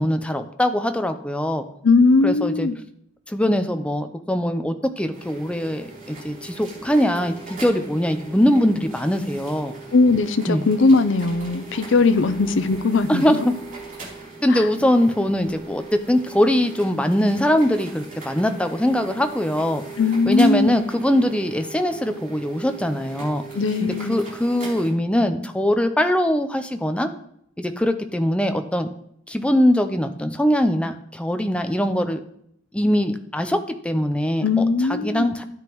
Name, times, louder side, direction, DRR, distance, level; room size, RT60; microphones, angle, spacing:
voice 1, 0.0-1.7 2.2-2.7 3.3-9.8 10.5-10.6 13.1-13.5 14.4-19.9 20.3-23.4 23.8-27.1 27.6-28.9 29.3-32.2 32.7-33.6 33.8-34.6 34.9-35.4, equal, 5° left, 0.6 m, -22 dB
voice 2, 1.8-2.8 9.9-13.5 14.5-14.6 20.0-20.8 23.5-24.2 34.4-35.4, left 3 dB, 70° left, 0.5 m, -19 dB
sound 1, 5.1-24.9, right 4 dB, 45° right, 3.6 m, -39 dB
12.5 x 8.9 x 3.1 m
head